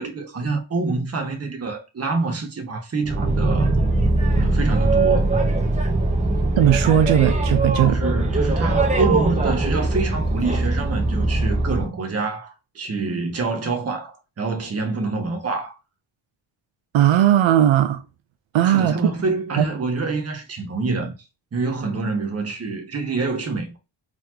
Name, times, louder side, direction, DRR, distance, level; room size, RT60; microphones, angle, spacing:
voice 1, 0.0-3.7 4.4-5.3 7.9-15.7 18.6-21.1 21.5-23.8, right 3 dB, 30° right, 1.0 m, -26 dB
Boat Water vehicle, 3.0-11.9, right 2 dB, 15° right, 0.7 m, -21 dB
voice 2, 6.6-8.0 16.9-18.0 18.5-19.1 19.6-19.7, right 11 dB, 80° right, 0.6 m, -17 dB
4.0 x 3.0 x 2.7 m
wide cardioid pair, 145°, 46 cm